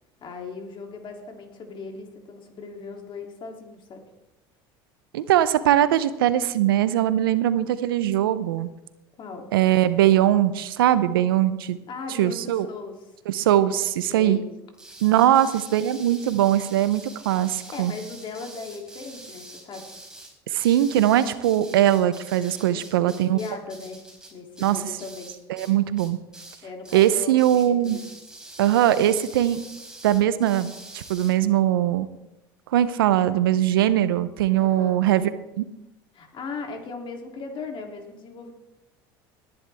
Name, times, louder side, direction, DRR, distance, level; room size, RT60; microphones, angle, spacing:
voice 1, 0.2-4.0 9.2-9.5 11.9-13.0 14.1-14.5 15.3-15.4 17.7-19.8 22.7-24.0 24.3-25.3 26.6-28.0 34.6-35.0 36.1-38.5, left 4 dB, 45° left, 2 dB, 3.0 m, -38 dB
voice 2, 5.1-8.7 9.5-11.8 12.2-12.7 13.3-14.4 15.0-17.9 20.5-23.4 24.6-24.8 25.5-26.2 26.9-28.0 28.6-29.6 30.0-32.1 32.7-35.3 35.6-35.7, right 12 dB, 85° right, 14 dB, 0.7 m, -21 dB
sound 1, 14.7-25.7 26.0-26.6 26.8-27.1 27.4-31.3, right 2 dB, 5° right, 4.3 m, -45 dB
19.5 x 10.5 x 3.5 m, 0.95 s
hypercardioid pair, 90°, 12 cm